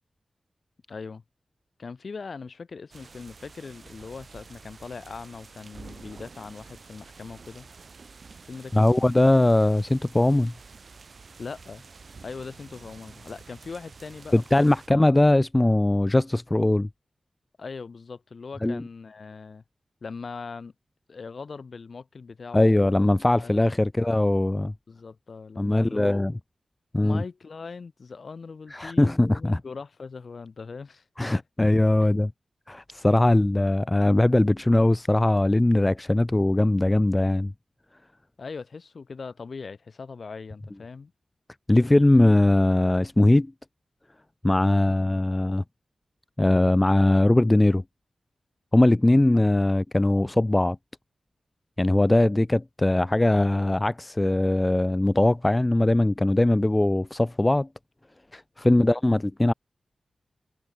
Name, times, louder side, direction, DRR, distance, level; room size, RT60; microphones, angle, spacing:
voice 1, 0.9-1.2 1.8-7.7 8.4-9.1 11.4-11.8 12.2-15.0 17.6-19.6 20.0-20.7 21.1-23.0 23.4-23.8 24.9-26.3 27.0-31.4 32.0-32.1 38.4-41.1 58.7-58.9, left 4 dB, 60° left, 2.9 m, -40 dB
sound 1, 2.9-14.9, right 4 dB, 55° right, 7.1 m, -49 dB
voice 2, 8.7-10.5 14.3-16.9 18.6-18.8 22.5-24.7 25.6-26.3 26.9-27.2 28.7-29.6 31.2-32.3 32.7-37.5 41.7-43.5 44.4-45.6 46.4-47.8 48.7-50.8 51.8-57.7 58.3-59.5, left 1 dB, 20° left, 0.5 m, -21 dB
wide cardioid pair, 90°, 0 cm